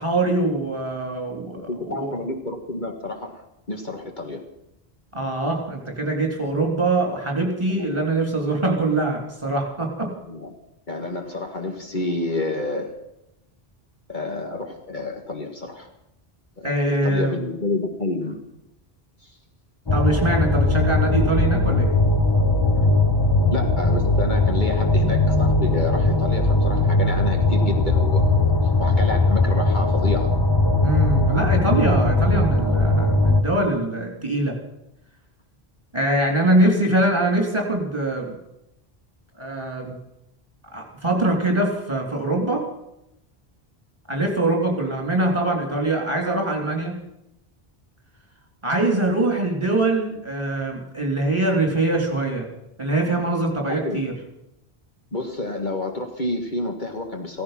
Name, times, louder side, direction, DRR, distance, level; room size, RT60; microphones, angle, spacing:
voice 1, 0.0-2.1 5.1-10.1 16.6-17.4 19.9-21.9 30.8-34.6 35.9-38.4 39.4-40.0 40.7-42.6 44.1-47.0 48.6-52.5 52.8-54.1, right 2 dB, 30° right, 1 dB, 3.7 m, -23 dB
voice 2, 1.6-3.4 3.7-4.4 7.7-8.0 10.3-10.5 10.9-12.9 14.1-15.9 16.6-16.8 17.0-18.4 22.8-22.9 23.5-28.5 28.8-30.3 36.6-36.9 53.7-54.1 55.1-57.4, left 2 dB, 50° left, 2 dB, 2.0 m, -29 dB
sound 1, 19.9-33.4, left 2 dB, 25° left, 1.0 m, -19 dB
16.0 x 15.0 x 5.9 m, 0.84 s
omnidirectional pair, 1.0 m